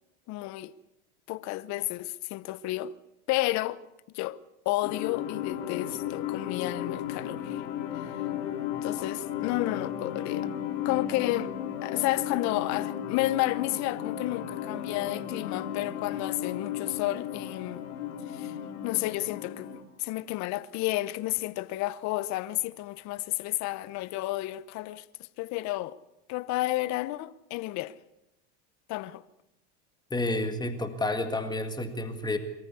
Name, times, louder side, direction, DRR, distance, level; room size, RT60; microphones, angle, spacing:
voice 1, 0.3-0.7 1.3-2.9 3.3-3.8 4.1-4.4 4.6-7.6 7.9-8.2 8.8-10.5 10.8-11.5 11.8-17.9 18.3-18.5 18.8-19.7 20.0-25.0 25.4-26.0 26.3-28.0 28.9-29.2, left 17 dB, 50° left, 1.0 m, -31 dB
sound 1, 4.8-19.8, left 10 dB, 75° left, 3.3 m, -35 dB
voice 2, 30.1-32.4, left 2 dB, 10° left, 1.9 m, -30 dB
23.5 x 14.5 x 8.4 m
supercardioid pair, 115°, 36 cm